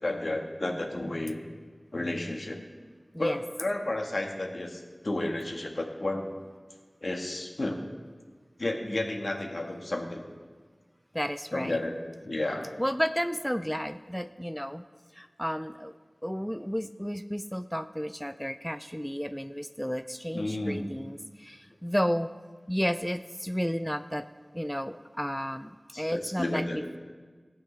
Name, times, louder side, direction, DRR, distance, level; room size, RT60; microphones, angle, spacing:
voice 1, 0.0-1.4 1.9-2.6 3.2-6.3 7.0-7.8 8.6-10.2 11.5-12.0 12.2-12.7 20.3-20.9 25.9-26.8, left 1 dB, 75° left, 1 dB, 1.5 m, -32 dB
voice 2, 11.1-11.8 12.8-14.8 15.1-16.0 16.2-22.3 22.7-24.3 24.5-27.0, equal, 5° left, 11 dB, 0.4 m, -32 dB
18.0 x 8.9 x 3.3 m, 1.5 s
wide cardioid pair, 55°, 0 cm